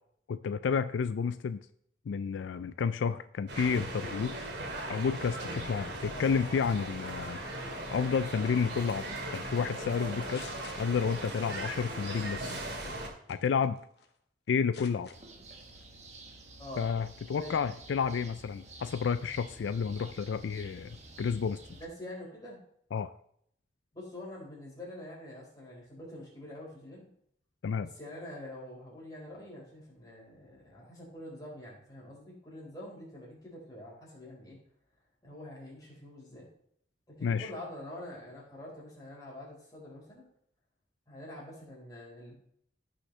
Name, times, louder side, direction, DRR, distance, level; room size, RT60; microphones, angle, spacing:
voice 1, 0.3-1.6 2.1-4.4 4.9-7.4 7.9-10.5 10.8-12.6 13.3-13.8 14.5-15.1 16.8-21.6 22.9-23.1 27.6-27.9 37.2-37.5, left 6 dB, 80° left, 13 dB, 0.4 m, -31 dB
sound 1, 3.5-13.1, right 1 dB, 65° right, 2.3 m, -38 dB
sound 2, 10.0-11.3 11.6-11.9 12.5-12.8 13.3-14.2 14.5-15.2 15.6-15.8, left 6 dB, 60° left, 1.0 m, -51 dB
sound 3, 15.1-21.9, right 2 dB, 35° right, 1.3 m, -51 dB
voice 2, 21.8-22.6 23.9-27.1 27.8-34.6 35.2-36.5 37.1-40.3 41.1-42.4, left 1 dB, 20° left, -4 dB, 4.3 m, -46 dB
15.5 x 6.3 x 3.2 m, 0.67 s
head